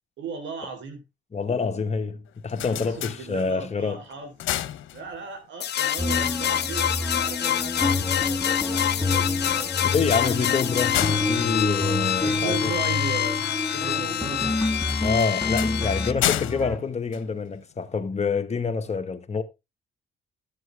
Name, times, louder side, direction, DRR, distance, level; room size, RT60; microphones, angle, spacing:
voice 1, 0.2-1.0 2.7-4.6 4.9-9.9 12.2-15.0, right 4 dB, 70° right, 4.1 m, -37 dB
voice 2, 1.3-4.0 9.8-12.7 15.0-19.4, left 5 dB, 35° left, 1.6 m, -27 dB
sound 1, 2.3-3.8 4.2-5.5 9.3-12.7 14.8-17.9, left 13 dB, 80° left, 0.9 m, -32 dB
sound 2, 5.6-16.1, left 11 dB, 55° left, 1.1 m, -27 dB
sound 3, 6.0-16.8, left 2 dB, 5° left, 1.3 m, -29 dB
12.5 x 7.7 x 3.5 m
cardioid pair, 90°, 20 cm